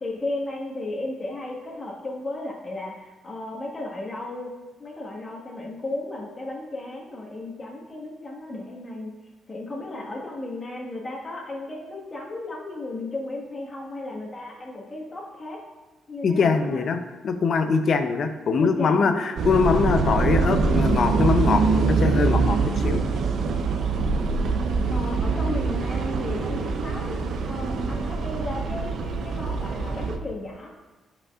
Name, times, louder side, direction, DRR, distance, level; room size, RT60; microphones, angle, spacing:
voice 1, 0.0-4.5 4.8-9.1 9.5-15.6 16.1-16.8 18.6-19.2 24.8-30.7, left 2 dB, 30° left, -3 dB, 1.5 m, -34 dB
voice 2, 16.2-17.0 17.2-23.1, left 5 dB, 55° left, 8 dB, 0.6 m, -22 dB
sound 1, 19.4-30.2, right 4 dB, 65° right, 0.6 m, -24 dB
9.8 x 5.2 x 2.4 m, 1.2 s
cardioid pair, 90°, 0 cm